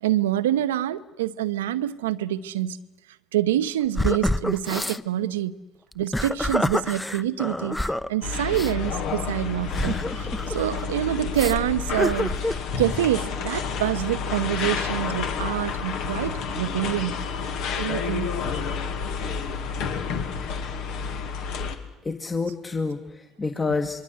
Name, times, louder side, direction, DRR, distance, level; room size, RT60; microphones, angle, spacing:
voice 1, 0.0-2.8 3.3-5.5 5.9-17.1 17.8-18.3, right 12 dB, 85° right, 0.9 m, -26 dB
sound 1, 4.0-5.0 5.9-8.1 8.5-8.7 9.7-10.9 11.4-11.6 12.0-12.6, left 1 dB, 10° left, 0.9 m, -27 dB
sound 2, 8.2-21.7, left 5 dB, 70° left, 2.4 m, -30 dB
voice 2, 22.0-24.0, left 4 dB, 25° left, 1.8 m, -28 dB
26.5 x 22.5 x 8.0 m
hypercardioid pair, 60°, 0 cm